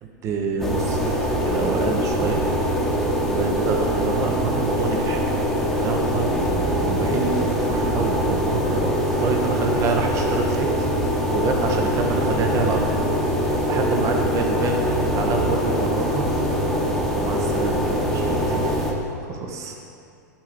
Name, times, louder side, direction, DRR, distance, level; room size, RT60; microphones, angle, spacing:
voice 1, 0.0-1.1 1.4-2.4 3.2-5.3 5.6-6.3 6.8-10.7 11.3-12.9 13.3-16.2 16.5-16.6 17.1-18.9 19.2-19.8, right 4 dB, 30° right, 2 dB, 0.9 m, -27 dB
sound 1, 0.6-18.9, equal, ahead, 1.1 m, -23 dB
7.4 x 4.8 x 7.0 m, 2.5 s
figure-of-eight pair, 95°, 10 cm